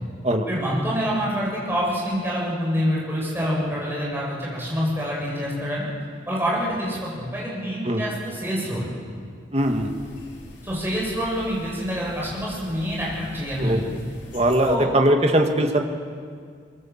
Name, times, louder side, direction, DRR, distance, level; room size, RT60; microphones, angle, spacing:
voice 1, 0.5-5.9 6.3-8.9 10.6-13.8 14.6-14.9, equal, 10° right, -5 dB, 7.9 m, -26 dB
sound 1, 9.5-14.8, left 1 dB, 80° left, 3.8 m, -43 dB
voice 2, 9.5-9.9 13.6-13.9 14.3-15.8, right 1 dB, 35° right, 4 dB, 2.0 m, -20 dB
24.0 x 22.5 x 7.4 m, 2.1 s
head